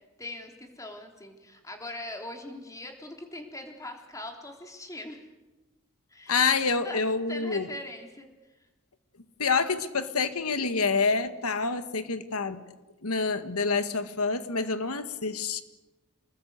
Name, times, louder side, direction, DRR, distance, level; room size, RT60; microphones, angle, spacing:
voice 1, 0.2-5.3 6.1-7.0 7.3-8.3, left 1 dB, 15° left, 3 dB, 3.5 m, -41 dB
voice 2, 6.3-7.7 9.4-12.6 13.0-15.6, left 4 dB, 85° left, 10 dB, 1.8 m, -27 dB
28.5 x 20.5 x 8.1 m, 1.1 s
head